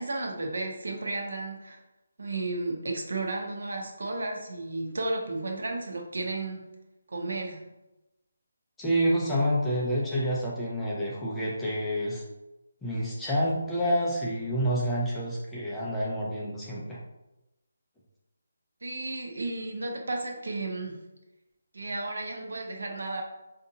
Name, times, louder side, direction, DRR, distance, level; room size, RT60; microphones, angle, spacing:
voice 1, 0.0-1.8 2.2-6.6 7.1-7.6 18.8-20.9 21.7-23.2, right 2 dB, 70° right, 2 dB, 0.8 m, -33 dB
voice 2, 8.8-12.2 12.8-17.0, equal, 5° left, -7 dB, 0.4 m, -28 dB
4.9 x 2.6 x 2.7 m, 0.98 s
hypercardioid pair, 180°, 0 cm